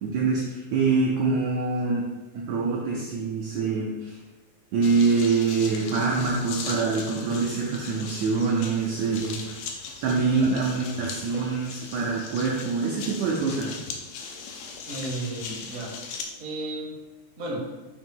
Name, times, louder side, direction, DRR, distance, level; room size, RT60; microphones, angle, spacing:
voice 1, 0.0-2.1 2.3-4.2 4.7-9.5 10.0-13.8, right 4 dB, 90° right, -2 dB, 1.6 m, -25 dB
sound 1, 4.8-16.2, left 5 dB, 90° left, 2.5 m, -39 dB
voice 2, 14.9-15.9 16.4-17.0 17.4-17.7, right 1 dB, 60° right, -3 dB, 0.7 m, -33 dB
6.3 x 2.9 x 5.4 m, 1.2 s
omnidirectional pair, 4.0 m